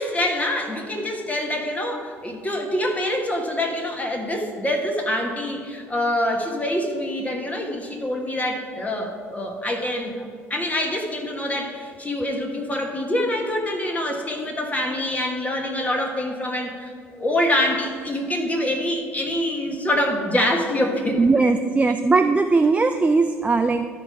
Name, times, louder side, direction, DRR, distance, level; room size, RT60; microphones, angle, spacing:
voice 1, 0.0-21.2, left 1 dB, 20° left, 2 dB, 1.5 m, -25 dB
voice 2, 21.2-23.9, right 3 dB, 20° right, 6 dB, 0.4 m, -19 dB
13.0 x 4.6 x 4.7 m, 2.1 s
hypercardioid pair, 55°, 7 cm